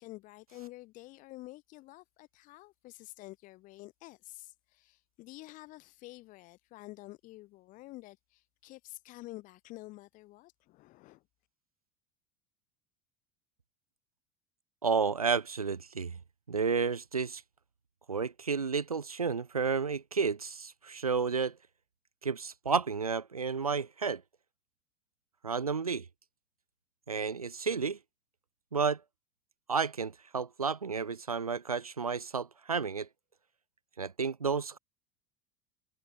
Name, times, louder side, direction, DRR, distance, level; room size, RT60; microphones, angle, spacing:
voice 1, 0.0-11.2, left 19 dB, 45° left, 5.5 m, -49 dB
voice 2, 14.8-16.2 16.5-17.4 18.1-21.6 22.2-24.2 25.4-26.0 27.1-28.0 28.7-29.0 29.7-33.1 34.0-34.8, right 5 dB, 80° right, 1.1 m, -31 dB
figure-of-eight pair, 75°, 18 cm